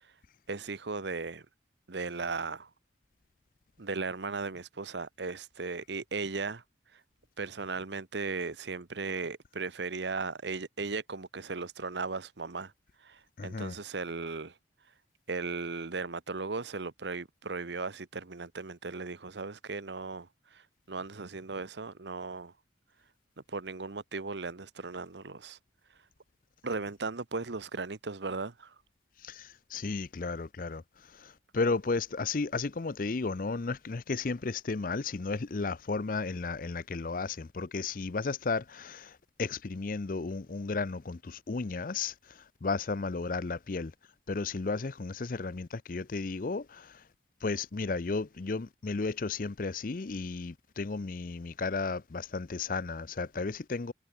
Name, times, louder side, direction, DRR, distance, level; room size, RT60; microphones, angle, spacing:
voice 1, 0.5-1.4 1.9-2.7 3.8-6.6 7.4-12.7 13.0-14.5 15.3-20.6 20.9-22.5 23.5-25.6 26.6-28.7, right 4 dB, 75° right, 1.0 m, -37 dB
voice 2, 13.4-13.7 29.2-30.8 31.2-39.1 39.4-42.1 42.6-43.9 44.3-46.9 47.4-53.9, left 4 dB, 50° left, 0.6 m, -33 dB
head